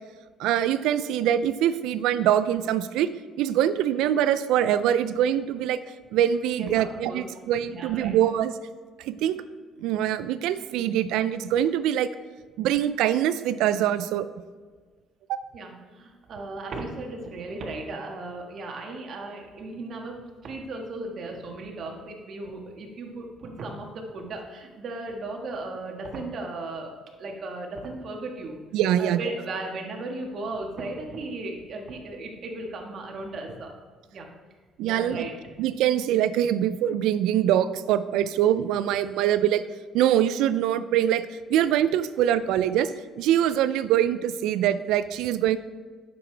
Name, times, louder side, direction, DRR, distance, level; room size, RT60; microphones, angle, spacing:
voice 1, 0.4-3.1 3.4-5.8 6.1-8.6 9.0-9.4 9.8-12.1 12.6-14.3 15.3-15.4 28.7-29.3 34.8-35.3 35.6-39.6 39.9-41.2 41.5-42.9 43.2-45.6, right 11 dB, 85° right, 13 dB, 0.4 m, -23 dB
voice 2, 6.6-7.2 7.7-8.1 15.5-26.9 27.2-28.6 29.0-33.7 34.1-34.3 34.8-35.3, right 2 dB, 55° right, 1 dB, 1.5 m, -36 dB
9.8 x 6.8 x 3.4 m, 1.5 s
cardioid pair, 110°, 0 cm